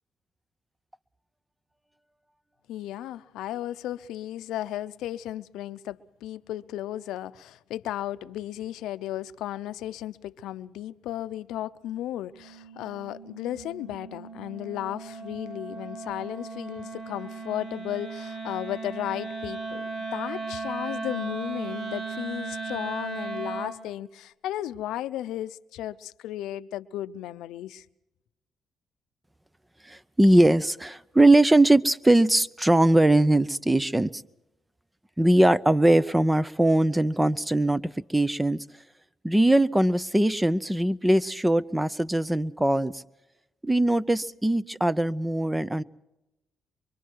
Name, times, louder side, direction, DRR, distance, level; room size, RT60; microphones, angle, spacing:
voice 1, 2.7-27.8, left 13 dB, 90° left, 0.6 m, -35 dB
Wind instrument woodwind instrument, 12.3-23.8, right 4 dB, 65° right, 3.8 m, -37 dB
voice 2, 29.8-34.2 35.2-38.6 39.2-43.0 43.6-45.8, right 1 dB, 10° right, 0.7 m, -21 dB
24.5 x 24.0 x 4.6 m
cardioid pair, 90°, 0 cm